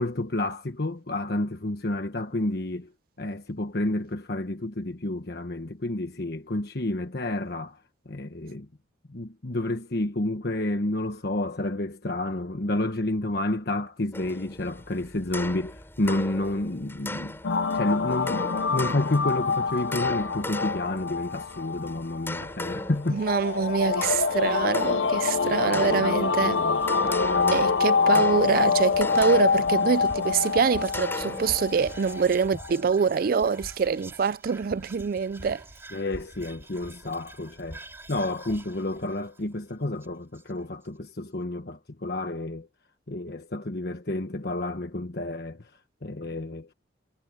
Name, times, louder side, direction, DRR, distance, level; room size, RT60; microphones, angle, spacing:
voice 1, 0.0-2.9 3.2-7.8 8.0-8.7 9.1-17.4 17.7-23.2 25.4-27.6 28.1-28.2 35.9-37.8 38.1-42.7 43.1-45.7 46.0-46.7, left 1 dB, 60° left, 1.3 m, -30 dB
sound 1, 14.1-32.4, left 1 dB, 15° left, 7.0 m, -39 dB
sound 2, 17.4-32.7, left 5 dB, 90° left, 0.8 m, -26 dB
voice 2, 23.1-26.6 27.5-35.6, right 6 dB, 50° right, 0.4 m, -25 dB
Whispering, 28.3-40.8, right 1 dB, 15° right, 3.8 m, -46 dB
head